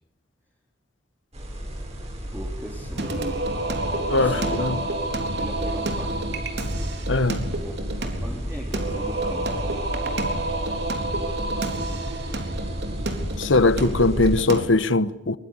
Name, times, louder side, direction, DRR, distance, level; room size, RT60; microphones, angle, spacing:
sound 1, 1.3-14.4, equal, 35° right, 7.7 m, -33 dB
voice 1, 2.3-3.4 4.1-4.8 5.3-6.5 7.6-7.7 8.2-9.8, equal, 10° right, 3.8 m, -38 dB
Singing, 3.0-14.6, right 2 dB, 60° right, 3.7 m, -29 dB
voice 2, 4.1-4.8 7.1-7.5 13.4-15.4, left 3 dB, 85° left, 1.2 m, -21 dB
23.0 x 22.0 x 9.9 m
head